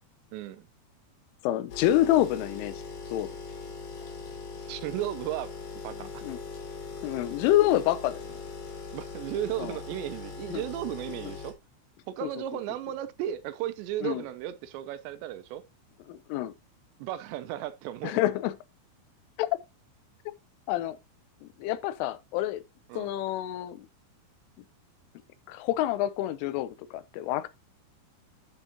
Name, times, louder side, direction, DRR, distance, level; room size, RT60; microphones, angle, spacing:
voice 1, 0.3-0.7 4.7-5.5 5.8-6.3 8.9-11.5 12.1-15.6 17.0-18.1 22.9-23.1, right 12 dB, 80° right, 2.6 m, -35 dB
voice 2, 1.4-2.8 3.1-3.3 6.0-6.4 7.0-8.4 9.6-9.8 10.5-10.6 12.2-12.3 14.0-14.2 16.1-16.5 18.0-18.5 19.4-19.5 20.7-21.0 21.4-22.6 23.0-23.9 25.5-27.5, left 13 dB, 90° left, 3.3 m, -27 dB
sound 1, 1.7-11.5, left 4 dB, 50° left, 4.0 m, -41 dB
10.0 x 7.2 x 2.9 m
omnidirectional pair, 5.6 m